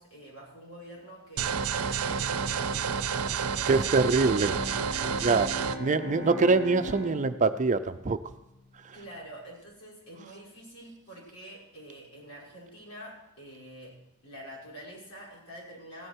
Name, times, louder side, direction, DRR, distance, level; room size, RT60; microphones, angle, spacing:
voice 1, 0.0-5.3 8.9-16.1, right 1 dB, 85° left, -5 dB, 5.8 m, -46 dB
sound 1, 1.4-5.8, right 6 dB, 80° right, 0.6 m, -30 dB
voice 2, 3.7-4.5 5.2-5.5 5.8-8.2, right 3 dB, 35° right, 10 dB, 0.5 m, -24 dB
Bowed string instrument, 4.4-8.9, equal, 30° left, 1.6 m, -40 dB
16.0 x 9.8 x 4.6 m, 0.88 s
head